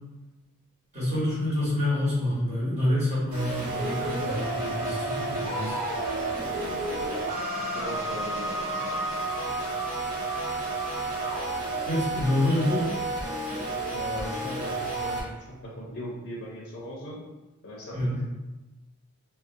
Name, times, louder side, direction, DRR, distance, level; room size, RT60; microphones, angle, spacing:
voice 1, 0.9-5.8 11.8-12.9 17.9-18.2, left 1 dB, 30° right, -10 dB, 1.1 m, -27 dB
sound 1, 3.3-15.2, right 2 dB, 80° right, 0.9 m, -31 dB
voice 2, 7.6-9.0 13.9-17.2 17.6-18.2, equal, 50° left, -4 dB, 0.5 m, -39 dB
2.5 x 2.1 x 2.5 m, 1.1 s
head